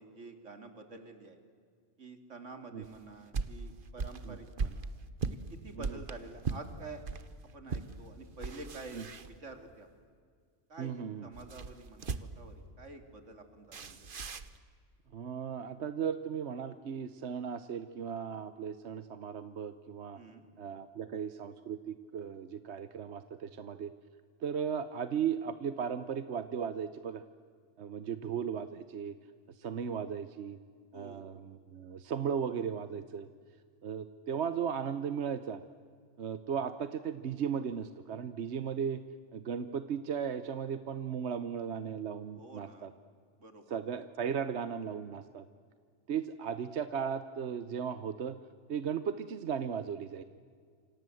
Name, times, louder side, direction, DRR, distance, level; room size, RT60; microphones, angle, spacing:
voice 1, 0.0-1.4 2.0-4.9 5.5-7.0 7.5-9.9 10.7-14.0 20.1-20.5 30.9-31.2 42.4-42.9 43.4-43.8, right 3 dB, 85° right, 7 dB, 3.0 m, -49 dB
sound 1, 2.8-7.3 7.7-7.9 8.3-9.8 11.3-12.5 13.7-14.6, right 4 dB, 50° right, 1.2 m, -38 dB
voice 2, 10.8-11.3 15.1-20.2 20.6-23.9 24.4-27.2 27.8-29.1 29.6-30.6 30.9-33.3 33.8-35.6 36.2-39.0 39.3-42.9 43.7-45.4 46.1-48.4 48.7-50.2, right 7 dB, 65° right, 12 dB, 1.1 m, -36 dB
28.0 x 26.0 x 7.8 m, 2.1 s
omnidirectional pair, 1.2 m